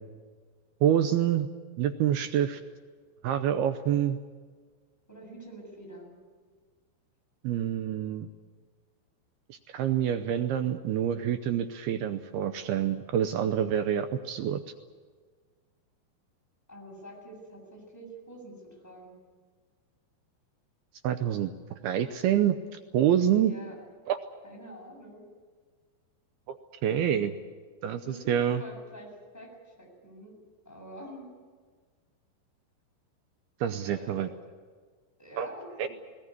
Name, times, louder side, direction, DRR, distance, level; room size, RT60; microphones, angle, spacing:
voice 1, 0.8-1.5 1.8-2.6 3.2-4.2 7.4-8.3 9.5-14.6 21.0-21.5 21.8-22.6 22.9-23.5 24.1-24.2 26.5-26.6 26.8-27.4 27.8-28.6 33.6-34.3 35.4-35.5 35.8-35.9, right 10 dB, 75° right, 8 dB, 2.4 m, -27 dB
voice 2, 5.1-6.2 16.7-19.2 23.4-23.8 24.4-25.3 28.0-30.3 30.7-31.3 33.9-34.3 35.2-35.9, right 1 dB, 5° left, -1 dB, 7.0 m, -46 dB
19.5 x 19.0 x 9.8 m, 1.5 s
omnidirectional pair, 5.2 m